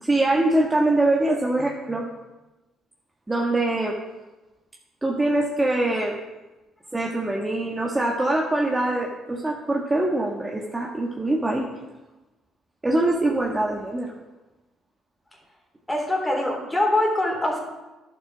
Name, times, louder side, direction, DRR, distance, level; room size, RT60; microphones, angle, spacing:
voice 1, 0.0-2.1 3.3-4.0 5.0-6.1 6.9-11.7 12.8-14.1, right 2 dB, 15° right, -1 dB, 1.6 m, -23 dB
voice 2, 15.9-17.6, left 1 dB, 10° left, 0 dB, 3.7 m, -23 dB
11.0 x 7.6 x 6.1 m, 1.1 s
supercardioid pair, 80°, 0 cm